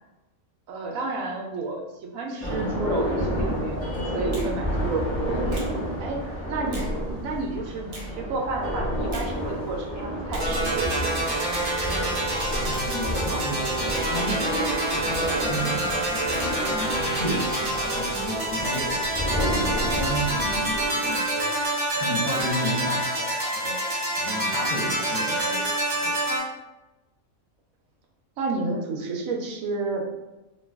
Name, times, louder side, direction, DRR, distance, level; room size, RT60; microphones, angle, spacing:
voice 1, 0.7-5.6 6.0-6.9 7.2-11.1 20.4-20.7 28.4-30.0, right 3 dB, 80° right, 1 dB, 1.0 m, -31 dB
sound 1, 2.4-20.9, equal, 15° left, 0.6 m, -30 dB
Finger snapping, 4.3-4.5 5.5-5.7 6.7-6.9 7.9-8.1 9.1-9.3 10.3-10.5 11.5-11.7 12.7-12.9 13.9-14.1 15.1-15.3 16.3-16.5 17.5-17.8 18.7-18.9 19.9-20.1 21.1-21.3 22.3-22.6, right 1 dB, 60° right, 0.3 m, -41 dB
sound 2, 10.4-26.4, right 1 dB, 40° right, 0.8 m, -27 dB
voice 2, 12.7-19.1 19.4-23.9 24.2-26.3, equal, 50° left, -6 dB, 0.9 m, -33 dB
2.5 x 2.3 x 3.4 m, 1.0 s
omnidirectional pair, 1.4 m